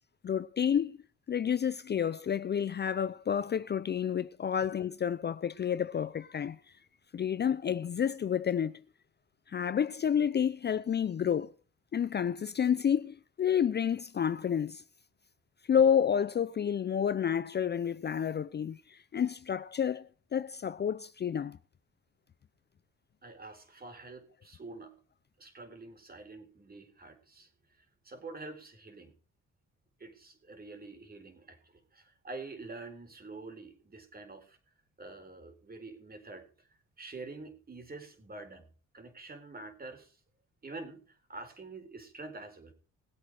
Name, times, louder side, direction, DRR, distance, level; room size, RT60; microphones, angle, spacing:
voice 1, 0.2-1.0 1.3-6.7 7.1-8.8 9.5-11.5 11.9-14.8 15.7-21.6, left 8 dB, 35° left, 0.5 m, -30 dB
voice 2, 23.2-24.9 25.4-29.1 30.0-34.6 35.0-36.7 37.0-38.7 38.9-40.2 40.6-42.7, right 3 dB, 30° right, 4.3 m, -47 dB
20.0 x 8.2 x 4.9 m
cardioid pair, 90°, 30 cm